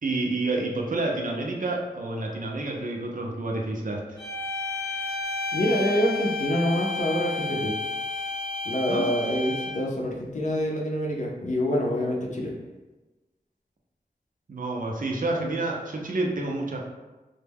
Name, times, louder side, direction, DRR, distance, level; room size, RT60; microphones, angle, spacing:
voice 1, 0.0-4.2 8.9-9.0 14.5-16.8, right 2 dB, 60° right, -1 dB, 0.5 m, -29 dB
sound 1, 4.2-9.9, left 3 dB, 20° left, 0.9 m, -31 dB
voice 2, 5.5-7.7 8.6-12.5, equal, 50° left, -1 dB, 0.5 m, -26 dB
2.1 x 2.1 x 3.3 m, 1.1 s
wide cardioid pair, 60°, 16 cm